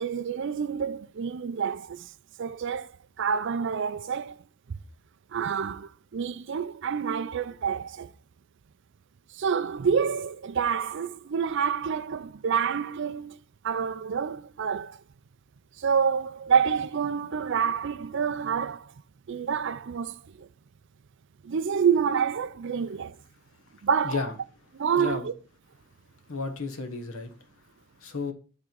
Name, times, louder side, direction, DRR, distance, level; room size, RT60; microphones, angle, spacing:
voice 1, 0.0-2.1 2.4-2.9 3.2-4.4 5.3-8.1 9.3-13.4 13.6-15.0 15.8-18.9 19.3-20.5 21.4-23.2 23.8-24.2 24.8-25.3, right 6 dB, 55° right, 0.4 m, -28 dB
voice 2, 23.5-24.4 25.0-25.3 26.3-28.3, left 4 dB, 70° left, 1.4 m, -34 dB
9.7 x 3.7 x 5.9 m
head